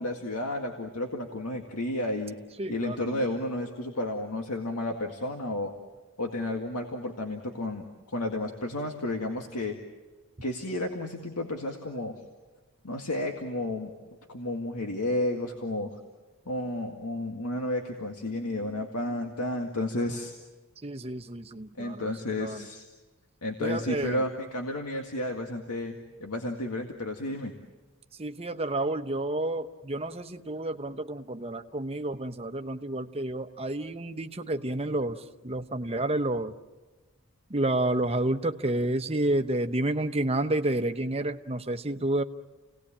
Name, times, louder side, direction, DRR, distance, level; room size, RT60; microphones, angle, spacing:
voice 1, 0.0-2.4 2.7-5.7 6.2-9.8 10.4-12.2 12.8-13.9 14.3-15.9 16.5-20.3 21.8-22.9 23.4-26.0 26.2-27.5, left 1 dB, 85° left, 3 dB, 2.0 m, -32 dB
voice 2, 2.6-3.2 20.8-22.1 22.4-22.6 23.6-24.2 28.2-36.5 37.5-42.2, right 1 dB, 25° right, 7 dB, 0.9 m, -30 dB
30.0 x 18.5 x 8.7 m, 1.2 s
head